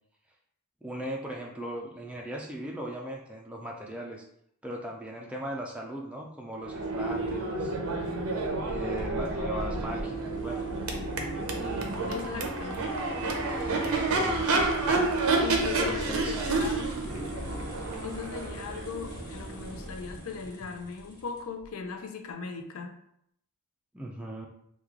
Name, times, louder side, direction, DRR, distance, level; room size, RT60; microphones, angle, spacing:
voice 1, 0.8-4.2 4.6-7.7 8.6-10.6 11.5-11.9 13.8-14.5 15.6-16.5 23.9-24.5, right 1 dB, 5° right, -2 dB, 0.3 m, -38 dB
Crowd / Race car auto racing / Accelerating revving vroom, 6.6-20.4, right 3 dB, 70° right, 0.6 m, -30 dB
sound 1, 9.0-21.7, left 1 dB, 15° left, 0.9 m, -42 dB
voice 2, 11.7-12.8 15.4-17.0 18.0-22.9, left 5 dB, 75° left, 6 dB, 0.5 m, -39 dB
3.1 x 2.3 x 3.6 m, 0.72 s
head